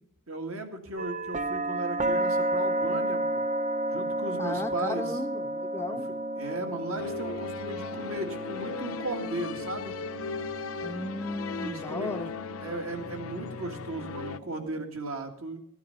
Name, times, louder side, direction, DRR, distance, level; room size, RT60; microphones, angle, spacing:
voice 1, 0.3-3.4 3.9-5.2 5.9-6.0 6.4-9.9 11.6-12.1 12.6-15.6, right 2 dB, 65° right, 2.0 m, -36 dB
sound 1, 1.0-14.8, right 1 dB, 35° right, 0.6 m, -33 dB
voice 2, 4.4-6.1 10.8-12.3, left 2 dB, 10° left, 0.4 m, -35 dB
sound 2, 7.0-14.4, left 5 dB, 70° left, 0.6 m, -38 dB
14.5 x 9.4 x 5.3 m
head